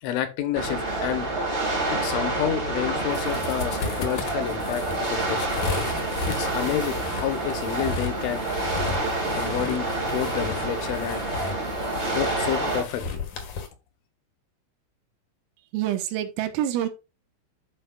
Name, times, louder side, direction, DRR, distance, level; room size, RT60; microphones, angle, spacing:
voice 1, 0.0-1.3 1.9-5.7 6.3-8.4 9.3-11.2 12.1-13.2, left 10 dB, 75° left, 9 dB, 3.4 m, -29 dB
sound 1, 0.5-12.8, right 2 dB, 40° right, 0.9 m, -28 dB
sound 2, 1.5-9.8, right 4 dB, 65° right, 4.5 m, -47 dB
sound 3, 2.8-13.7, left 4 dB, 60° left, 2.2 m, -35 dB
voice 2, 15.7-16.9, right 12 dB, 90° right, 8 dB, 3.9 m, -26 dB
11.5 x 5.3 x 2.4 m, 0.27 s
omnidirectional pair, 5.9 m